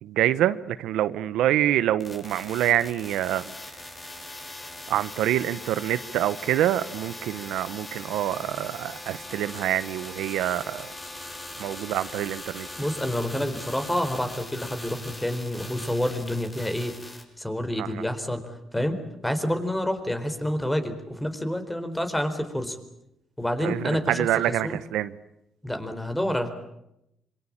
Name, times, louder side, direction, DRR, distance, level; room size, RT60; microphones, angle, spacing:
voice 1, 0.0-3.5 4.9-10.9 11.6-12.7 17.8-18.0 23.6-25.1, right 12 dB, 90° right, 14 dB, 0.9 m, -26 dB
sound 1, 2.0-17.2, left 2 dB, 25° left, 6.0 m, -40 dB
voice 2, 12.8-19.0 19.2-22.8 23.4-24.8 25.6-26.5, left 1 dB, 10° left, 8 dB, 4.2 m, -28 dB
26.5 x 24.0 x 8.8 m, 0.83 s
cardioid pair, 90°, 0 cm